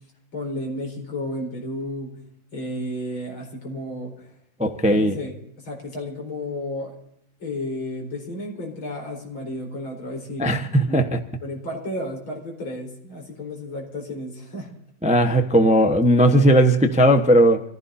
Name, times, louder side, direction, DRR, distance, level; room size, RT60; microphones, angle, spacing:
voice 1, 0.3-4.3 4.8-7.0 7.4-11.1 11.4-14.7, left 1 dB, 85° left, 5.2 m, -33 dB
voice 2, 4.6-5.2 10.4-11.2 15.0-17.6, equal, 5° right, 0.7 m, -17 dB
26.0 x 15.5 x 2.7 m
omnidirectional pair, 2.2 m